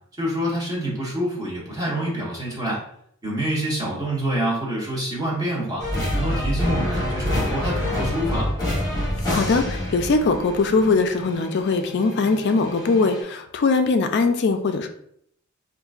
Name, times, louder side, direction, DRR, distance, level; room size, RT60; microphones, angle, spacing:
voice 1, 0.2-2.8 3.2-5.9 6.1-8.5, right 1 dB, 20° right, -5 dB, 1.0 m, -26 dB
sound 1, 5.8-13.2, left 1 dB, 20° left, 1.0 m, -27 dB
voice 2, 9.3-14.9, left 4 dB, 55° left, 6 dB, 0.3 m, -21 dB
3.7 x 2.5 x 2.3 m, 0.70 s
head